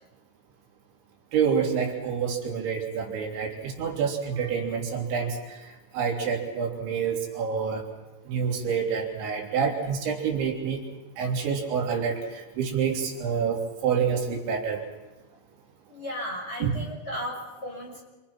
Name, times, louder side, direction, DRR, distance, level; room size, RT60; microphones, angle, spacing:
voice 1, 1.3-5.4 5.9-7.8 8.3-10.8 11.2-12.2 12.6-14.8 16.6-16.8, right 6 dB, 85° right, -1 dB, 5.7 m, -27 dB
voice 2, 15.9-18.0, equal, 15° left, -3 dB, 6.3 m, -35 dB
28.5 x 25.5 x 5.9 m, 1.2 s
omnidirectional pair, 5.2 m